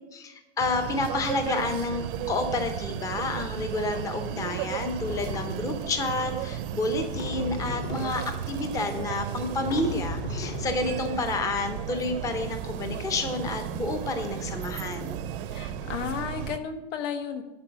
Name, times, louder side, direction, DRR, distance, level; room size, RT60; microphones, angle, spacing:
voice 1, 0.1-15.2, left 2 dB, 10° left, 7 dB, 0.6 m, -30 dB
sound 1, 0.6-16.6, right 10 dB, 50° right, 0.7 m, -35 dB
sound 2, 3.5-4.0 4.7-4.8 5.0-5.9 7.1-8.6 9.2-9.3 9.7-11.5, left 3 dB, 55° left, 1.7 m, -37 dB
voice 2, 15.5-17.4, left 7 dB, 80° left, 7 dB, 1.4 m, -33 dB
11.0 x 4.3 x 7.1 m, 1.1 s
hypercardioid pair, 140°, 36 cm